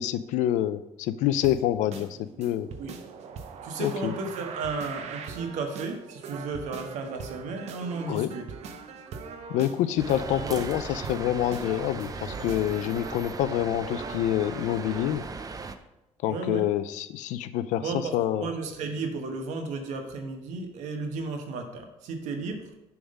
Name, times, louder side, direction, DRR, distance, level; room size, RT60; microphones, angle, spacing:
voice 1, 0.0-2.7 3.8-4.1 8.1-8.4 9.5-15.2 16.2-18.5, left 12 dB, 85° left, 13 dB, 0.4 m, -27 dB
sound 1, 1.4-15.2, right 6 dB, 65° right, 0.7 m, -42 dB
voice 2, 3.6-8.4 10.4-10.6 16.3-16.6 17.8-22.6, right 4 dB, 80° right, 4 dB, 1.1 m, -34 dB
sound 2, 10.0-15.8, right 4 dB, 30° right, 0.5 m, -38 dB
7.0 x 3.6 x 5.3 m, 0.91 s
cardioid pair, 100°, 12 cm